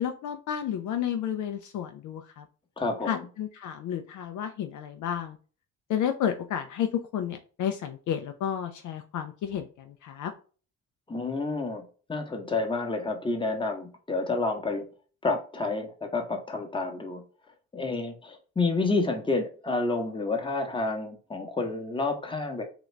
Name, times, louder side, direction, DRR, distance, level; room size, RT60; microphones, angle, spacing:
voice 1, 0.0-2.4 3.1-5.4 5.9-10.3, left 9 dB, 65° left, 6 dB, 0.5 m, -31 dB
voice 2, 2.8-3.3 11.1-11.8 12.1-14.8 15.2-17.2 17.7-22.6, left 3 dB, 15° left, 3 dB, 0.9 m, -29 dB
2.9 x 2.5 x 3.2 m, 0.37 s
cardioid pair, 75°, 32 cm